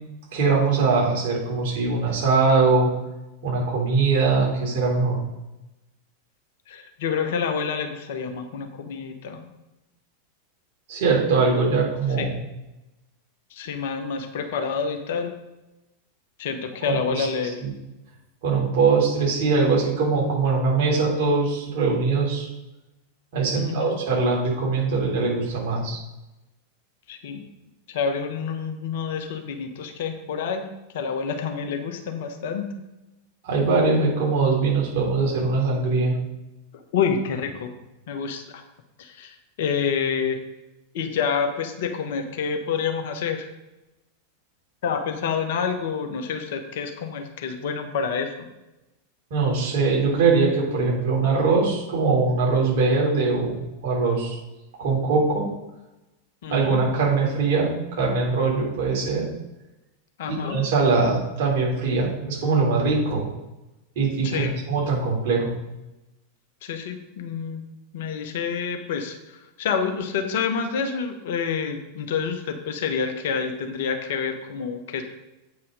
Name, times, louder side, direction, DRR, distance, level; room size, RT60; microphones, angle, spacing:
voice 1, 0.3-2.9 3.4-5.2 10.9-12.3 16.9-17.3 17.6-17.7 18.4-22.5 23.3-26.0 33.4-36.1 49.3-54.4 54.8-55.5 56.5-59.3 60.3-63.3 64.0-65.5, right 4 dB, 50° right, -3 dB, 3.5 m, -22 dB
voice 2, 6.7-9.5 12.2-12.3 13.5-15.3 16.4-17.6 23.6-24.0 27.1-27.4 27.9-30.7 30.9-32.7 36.7-37.7 38.1-38.6 39.0-40.4 40.9-43.5 44.8-48.5 56.4-56.8 60.2-60.6 64.2-64.5 66.6-67.6 67.9-75.0, left 6 dB, 55° left, 6 dB, 1.1 m, -28 dB
8.4 x 5.5 x 5.2 m, 0.99 s
figure-of-eight pair, 90°, 0 cm